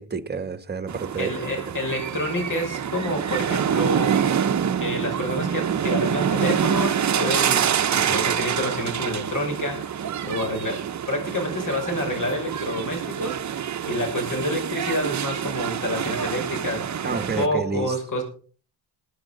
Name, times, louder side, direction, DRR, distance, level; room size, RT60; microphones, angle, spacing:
voice 1, 0.0-1.3 7.9-8.3 17.0-17.9, right 5 dB, 25° right, 1.3 m, -30 dB
sound 1, 0.9-17.5, right 8 dB, 45° right, 0.9 m, -26 dB
voice 2, 1.2-4.4 4.8-7.7 8.1-13.4 13.8-18.2, left 1 dB, 50° left, 6.4 m, -28 dB
19.0 x 10.5 x 4.0 m
cardioid pair, 95°, 40 cm